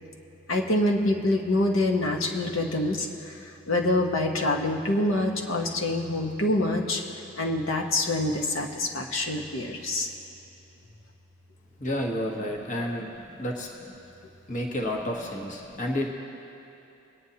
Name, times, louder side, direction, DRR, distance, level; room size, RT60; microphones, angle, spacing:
voice 1, 0.5-7.0 7.4-10.1 13.4-13.5 15.6-15.8, left 1 dB, 80° left, 0 dB, 1.1 m, -26 dB
voice 2, 11.8-13.1 13.4-13.7 14.5-16.1, left 1 dB, 35° left, 0 dB, 1.0 m, -30 dB
21.5 x 9.4 x 2.8 m, 2.9 s
head